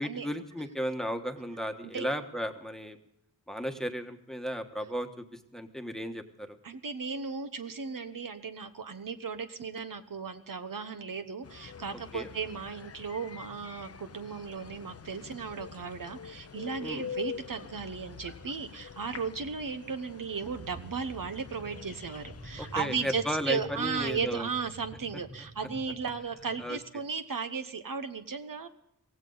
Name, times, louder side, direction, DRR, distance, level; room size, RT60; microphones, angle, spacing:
voice 1, 0.0-3.0 3.5-6.5 11.9-12.3 16.8-17.0 22.6-24.5 26.6-26.8, equal, ahead, 6 dB, 1.3 m, -35 dB
voice 2, 6.6-28.7, right 5 dB, 65° right, 8 dB, 1.1 m, -36 dB
sound 1, 11.4-22.8, left 6 dB, 45° left, 0.6 m, -45 dB
sound 2, 20.4-26.7, right 1 dB, 85° right, 4.4 m, -48 dB
16.5 x 16.0 x 4.0 m, 0.80 s
wide cardioid pair, 90°, 35 cm